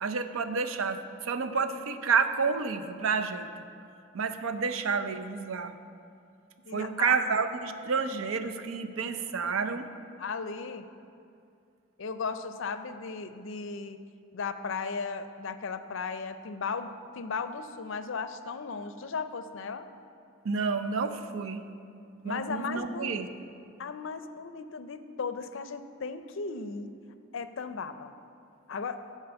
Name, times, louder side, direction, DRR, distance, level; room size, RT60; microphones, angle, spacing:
voice 1, 0.0-3.5 4.1-5.7 6.7-9.9 20.4-21.6 22.2-23.3, right 5 dB, 75° right, 8 dB, 0.5 m, -29 dB
voice 2, 6.7-7.2 10.2-10.8 12.0-14.0 14.3-19.9 22.2-23.2 23.8-26.9 27.3-28.1 28.7-29.0, left 5 dB, 60° left, 10 dB, 0.5 m, -36 dB
11.0 x 4.6 x 6.9 m, 2.5 s
head